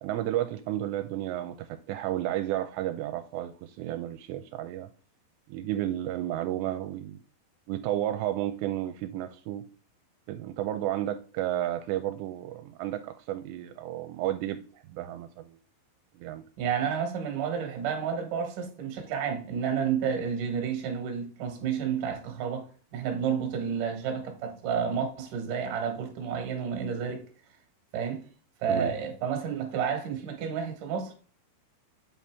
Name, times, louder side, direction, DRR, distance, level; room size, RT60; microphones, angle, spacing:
voice 1, 0.0-4.9 5.5-7.2 7.7-9.6 10.3-14.6 14.9-15.6 16.2-16.4 28.7-28.9, right 13 dB, 85° right, 2.7 m, -32 dB
voice 2, 16.6-22.7 22.9-27.2 27.9-28.2 28.6-31.1, right 7 dB, 60° right, 2.5 m, -30 dB
8.0 x 4.2 x 3.5 m
omnidirectional pair, 5.0 m